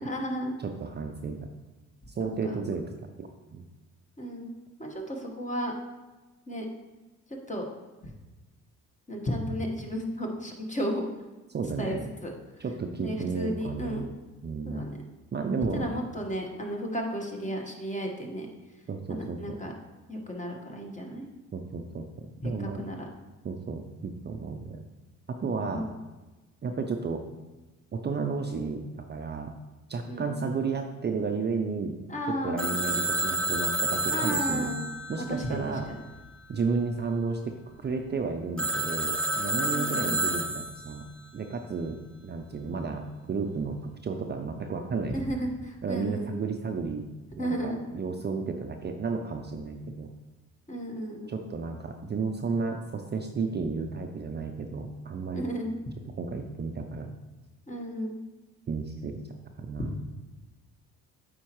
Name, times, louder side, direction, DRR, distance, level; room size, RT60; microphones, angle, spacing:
voice 1, 0.0-0.5 2.4-2.6 4.2-4.5 4.8-5.7 6.5-6.7 7.3-7.7 8.0-8.1 9.1-11.0 11.8-12.3 13.0-14.1 14.6-15.0 15.7-18.5 19.1-19.7 20.1-21.2 22.4-23.1 25.5-26.0 30.1-30.4 32.1-32.7 34.1-34.8 35.2-35.6 39.7-40.1 45.1-46.4 47.4-47.8 50.7-51.4 55.3-55.7 57.7-58.2 59.8-60.0, equal, 20° left, 1 dB, 1.4 m, -33 dB
voice 2, 0.6-1.5 2.2-3.6 11.5-12.1 12.6-14.1 14.4-14.8 15.3-15.9 18.9-19.6 21.5-22.8 23.4-24.8 25.4-25.9 26.6-27.2 27.9-29.5 29.9-32.0 32.4-34.7 35.1-35.9 36.5-41.0 41.3-42.0 42.2-43.8 44.0-45.2 45.8-47.1 47.4-50.1 51.3-55.4 56.2-57.1 58.7-59.2 59.6-59.9, right 4 dB, 30° right, 4 dB, 0.5 m, -32 dB
Telephone, 32.6-36.2 38.6-41.1, right 2 dB, 5° left, 1.1 m, -30 dB
8.3 x 4.4 x 3.1 m, 1.1 s
supercardioid pair, 70°, 33 cm